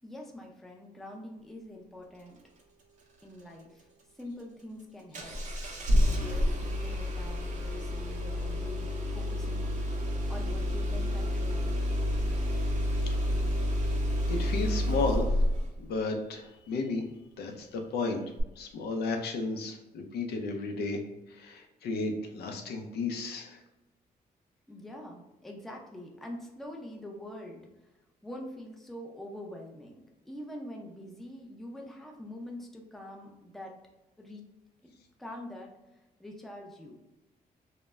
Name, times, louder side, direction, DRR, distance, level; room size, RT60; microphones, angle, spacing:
voice 1, 0.0-2.4 3.2-3.9 4.1-5.4 5.8-9.7 10.3-11.7 24.7-27.6 28.2-30.0 30.3-33.7 34.2-34.4 34.8-34.9 35.2-35.7 36.2-37.0, left 1 dB, ahead, 0 dB, 0.5 m, -44 dB
Engine starting, 5.1-15.7 18.4-18.5, left 1 dB, 50° right, 0.5 m, -29 dB
voice 2, 14.3-15.5 15.8-17.0 17.4-18.2 18.6-21.0 21.3-23.6, left 3 dB, 80° left, 3 dB, 0.5 m, -33 dB
2.1 x 2.0 x 3.4 m, 0.97 s
cardioid pair, 110°, 16 cm